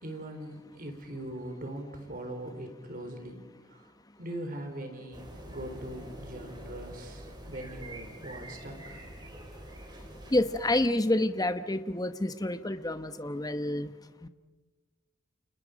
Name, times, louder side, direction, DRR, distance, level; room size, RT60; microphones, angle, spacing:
voice 1, 0.0-3.4 3.7-3.9 4.2-9.0, right 1 dB, 45° right, 5 dB, 4.1 m, -41 dB
sound 1, 5.1-10.9, right 1 dB, 20° right, 4.1 m, -45 dB
voice 2, 10.3-13.9 14.2-14.3, left 1 dB, 20° left, 10 dB, 0.9 m, -28 dB
29.5 x 28.0 x 5.2 m, 1.3 s
head